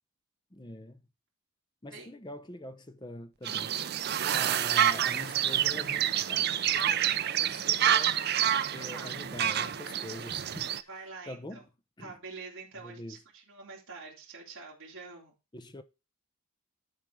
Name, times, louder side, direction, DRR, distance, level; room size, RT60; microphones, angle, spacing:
voice 1, 0.5-1.0 1.8-3.8 4.3-8.2 8.7-10.9 11.3-11.7 12.0-12.2 12.8-13.2 15.5-15.8, left 1 dB, 20° left, 0.7 m, -44 dB
sound 1, 3.4-10.8, right 10 dB, 45° right, 0.4 m, -28 dB
voice 2, 4.2-4.8 8.9-9.1 10.9-11.6 12.0-15.4, right 4 dB, 65° right, 2.7 m, -46 dB
11.0 x 4.5 x 4.8 m
head